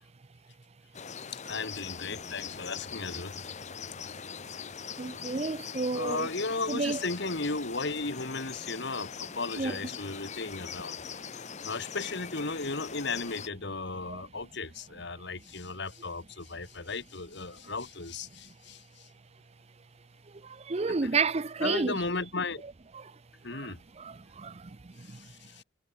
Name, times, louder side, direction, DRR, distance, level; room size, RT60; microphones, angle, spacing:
sound 1, 0.9-13.5, left 7 dB, 35° left, 0.8 m, -42 dB
voice 1, 1.3-3.4 5.9-11.0 11.6-19.1 21.6-22.6 23.4-23.8 25.0-25.6, left 3 dB, 60° left, 2.3 m, -35 dB
voice 2, 5.0-6.3 6.7-7.0 9.6-9.8 14.1-14.2 20.3-22.0 22.9-23.2 23.5-25.3, right 4 dB, 30° right, 0.6 m, -32 dB
head